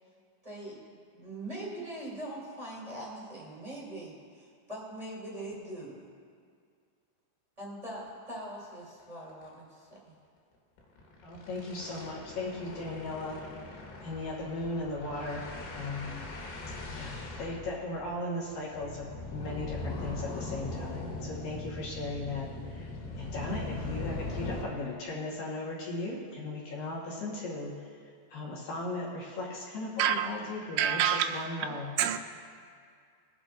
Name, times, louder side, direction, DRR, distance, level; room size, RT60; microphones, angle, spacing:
voice 1, 0.4-0.8 1.1-6.1 7.6-10.2, right 1 dB, 15° right, 1.2 m, -42 dB
sound 1, 8.0-8.1 8.4-8.5 8.8-9.0 9.3-9.5 10.8-24.6, left 2 dB, 80° left, 3.7 m, -40 dB
voice 2, 11.2-13.4 14.0-16.2 16.9-22.9 23.2-27.9 28.3-32.0, left 2 dB, 65° left, 2.5 m, -37 dB
voice 3, 30.0-30.3 30.8-31.5 32.0-32.2, right 9 dB, 90° right, 3.0 m, -26 dB
22.5 x 8.1 x 2.5 m
omnidirectional pair, 5.3 m